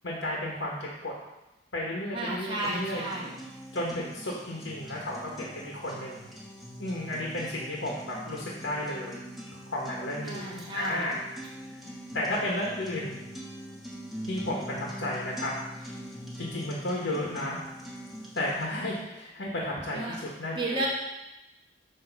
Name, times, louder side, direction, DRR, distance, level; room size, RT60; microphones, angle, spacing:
voice 1, 0.0-1.1 1.7-3.0 3.7-6.3 6.8-9.2 9.7-11.2 12.1-13.2 14.2-15.5 15.8-16.0 16.4-17.6 18.3-20.9, left 1 dB, 80° left, -4 dB, 1.4 m, -33 dB
voice 2, 2.1-3.4 10.2-11.1 19.9-20.2 20.5-20.9, right 2 dB, 25° right, -5 dB, 1.2 m, -33 dB
sound 1, 2.6-18.6, equal, ahead, 1.3 m, -43 dB
8.1 x 3.1 x 6.0 m, 0.94 s
head